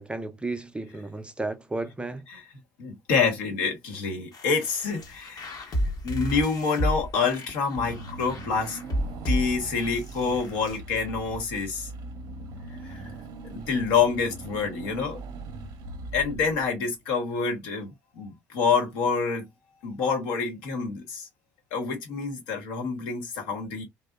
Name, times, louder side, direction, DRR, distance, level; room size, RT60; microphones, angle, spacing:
voice 1, 0.0-2.2, right 2 dB, 10° right, 0.4 m, -33 dB
voice 2, 2.8-5.7 6.0-8.8 9.2-11.9 12.8-13.1 13.4-15.2 16.1-19.5 19.8-21.3 21.7-23.8, left 5 dB, 75° left, 1.0 m, -27 dB
sound 1, 4.3-10.8, equal, 45° left, 0.9 m, -32 dB
Car / Engine, 7.8-16.9, right 3 dB, 60° right, 0.6 m, -40 dB
2.7 x 2.0 x 2.3 m
hypercardioid pair, 60°, 8 cm